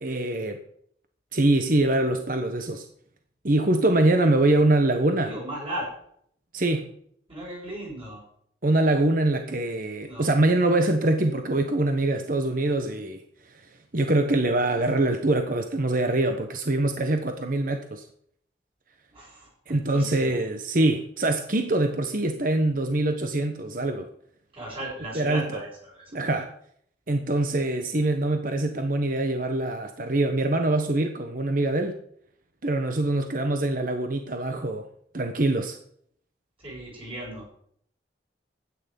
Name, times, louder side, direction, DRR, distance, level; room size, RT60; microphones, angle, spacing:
voice 1, 0.0-0.6 1.3-2.8 3.4-5.3 6.5-6.9 8.6-13.2 13.9-18.0 19.7-24.1 25.1-25.6 26.1-26.5 27.1-32.0 32.6-34.9 35.1-35.8, right 2 dB, 50° right, 6 dB, 1.2 m, -24 dB
voice 2, 5.2-5.9 7.3-8.3 10.0-10.3 19.1-20.4 24.5-26.4 36.6-37.5, right 1 dB, 30° right, -4 dB, 6.9 m, -37 dB
13.0 x 9.5 x 5.3 m, 0.64 s
head